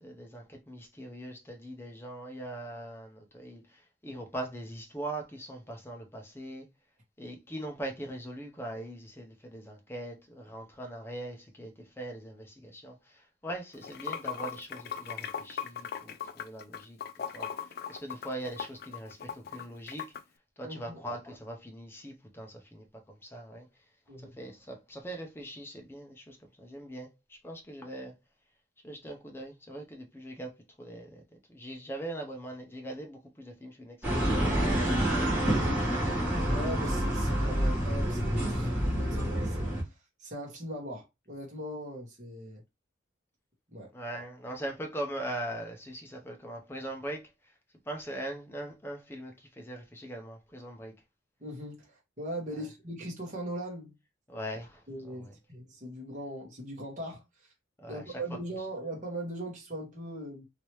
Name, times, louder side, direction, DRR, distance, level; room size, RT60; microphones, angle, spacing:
voice 1, 0.0-6.7 7.2-17.0 17.3-20.1 20.6-23.7 24.4-28.1 28.8-31.2 31.5-35.0 36.2-36.5 43.9-47.5 47.9-50.9 54.3-55.2 57.8-58.2, right 1 dB, 10° left, 0.7 m, -41 dB
Water / Sink (filling or washing), 13.7-20.2, left 8 dB, 50° left, 0.3 m, -38 dB
voice 2, 20.6-21.0 24.1-24.4 35.4-36.2 36.4-42.6 43.7-43.9 51.4-53.9 54.9-57.5 57.9-60.5, right 1 dB, 40° right, 1.3 m, -40 dB
sound 1, 34.0-39.8, right 1 dB, 10° right, 1.5 m, -28 dB
3.0 x 2.9 x 3.1 m
head